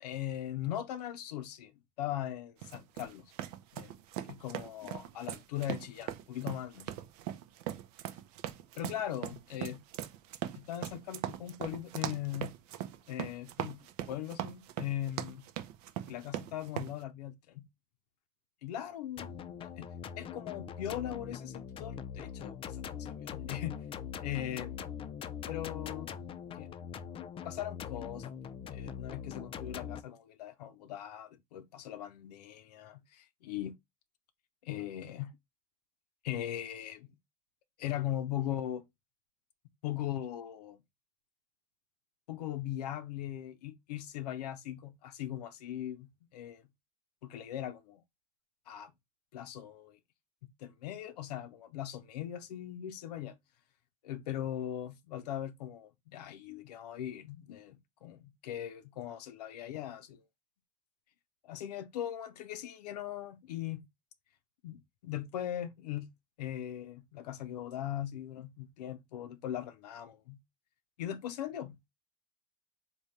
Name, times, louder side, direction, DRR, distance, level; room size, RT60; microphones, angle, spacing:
voice 1, 0.0-1.7 2.0-3.3 3.7-3.9 4.3-6.9 8.8-9.8 10.5-12.5 13.1-13.8 14.1-15.4 16.1-17.7 18.6-19.9 20.2-23.8 24.2-24.7 25.5-26.1 26.5-26.7 27.4-33.8 34.6-35.3 36.2-37.1 37.8-38.8 39.8-40.8 42.3-46.6 47.2-48.0 48.7-48.9 49.3-50.0 50.4-53.4 54.0-60.2 61.4-63.8 64.6-66.1 66.4-70.4 71.0-71.8, left 11 dB, 90° left, 0.5 m, -39 dB
sound 1, 2.6-16.9, right 12 dB, 70° right, 0.5 m, -40 dB
sound 2, 19.2-30.0, left 8 dB, 25° left, 0.4 m, -42 dB
3.5 x 2.2 x 4.1 m
supercardioid pair, 100°, 20 cm